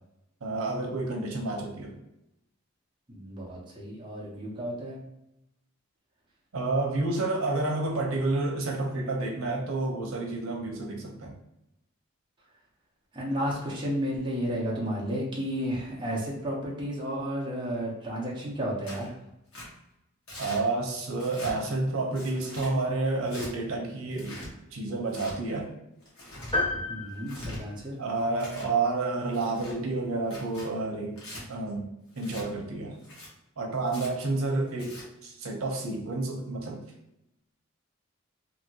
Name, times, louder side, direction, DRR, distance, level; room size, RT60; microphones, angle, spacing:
voice 1, 0.4-2.0 6.5-11.4 20.4-24.4 24.7-25.7 28.0-31.2 31.5-31.9 32.2-33.0 33.6-36.8, right 2 dB, 90° right, 0 dB, 0.7 m, -30 dB
voice 2, 3.1-5.0 13.1-19.1 26.9-27.9, equal, 25° right, -4 dB, 0.7 m, -32 dB
Tearing, 18.8-19.1 19.5-19.7 20.3-20.6 21.1-21.5 22.1-22.7 23.3-23.5 24.1-24.5 25.1-25.3 26.0-26.5 27.1-27.6 28.2-28.7 29.3-29.7 30.2-30.7 31.2-31.4 32.2-32.4 33.0-33.3 33.8-34.1 34.7-35.0, left 1 dB, 90° left, 1.2 m, -42 dB
sound 1, 26.5-28.3, left 2 dB, 25° left, 1.0 m, -32 dB
2.8 x 2.7 x 2.7 m, 0.86 s
head